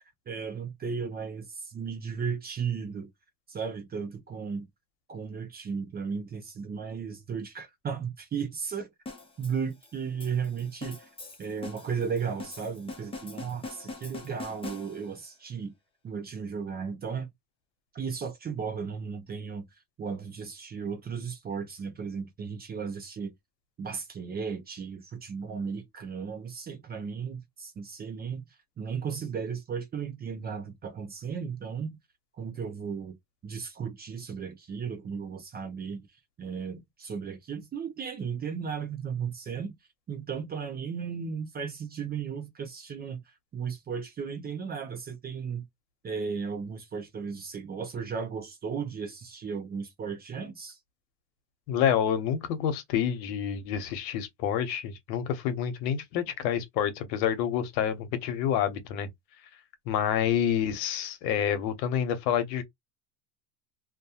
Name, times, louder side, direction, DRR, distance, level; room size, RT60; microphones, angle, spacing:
voice 1, 0.3-3.1 3.5-4.7 5.1-8.9 9.4-11.1 11.4-15.7 16.0-17.3 17.9-19.7 20.0-23.3 23.8-28.4 28.8-32.0 32.4-33.2 33.4-36.1 36.4-39.7 40.1-45.6 46.0-50.8, right 6 dB, 20° right, 0.4 m, -35 dB
sound 1, 9.1-15.3, left 3 dB, 10° left, 0.7 m, -43 dB
voice 2, 51.7-59.1 59.9-62.6, left 9 dB, 90° left, 0.8 m, -28 dB
2.2 x 2.2 x 2.7 m
supercardioid pair, 110°, 50 cm